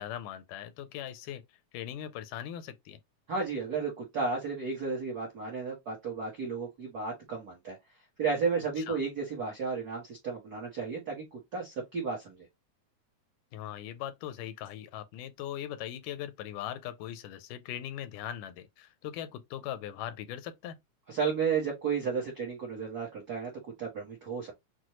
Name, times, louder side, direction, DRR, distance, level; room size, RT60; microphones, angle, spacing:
voice 1, 0.0-1.4 1.7-3.0 8.8-9.0 13.5-20.8, left 11 dB, 85° left, 2.1 m, -40 dB
voice 2, 3.3-7.8 8.2-12.5 21.1-23.5 23.8-24.5, right 5 dB, 65° right, 0.9 m, -33 dB
6.1 x 2.2 x 2.9 m
omnidirectional pair, 3.5 m